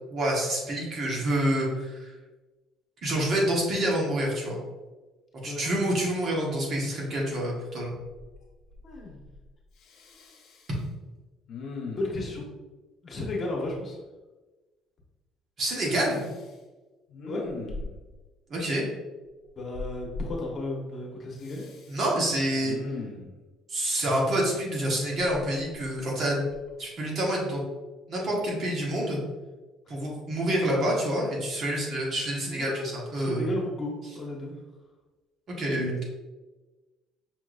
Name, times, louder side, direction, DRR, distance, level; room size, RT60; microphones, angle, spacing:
voice 1, 0.1-2.1 3.0-4.6 5.4-7.9 15.6-16.2 18.5-18.9 21.9-22.8 23.7-26.4 26.8-27.6 28.1-29.2 29.9-33.5 35.5-36.0, right 1 dB, 45° right, -3 dB, 1.4 m, -27 dB
Respiratory sounds, 8.1-8.4 8.7-9.4 9.8-10.8 11.5-12.3 15.9-16.5 17.1-18.2 19.7-20.3 21.4-22.1 22.6-23.4 25.2-26.1 26.5-26.7, left 3 dB, 70° left, 0.9 m, -40 dB
voice 2, 8.8-9.2 11.8-12.5 13.0-14.0 17.3-17.4 19.6-21.6 32.4-34.5, left 2 dB, 40° left, -2 dB, 1.3 m, -34 dB
5.8 x 3.0 x 2.6 m, 1.2 s
cardioid pair, 105°, 0 cm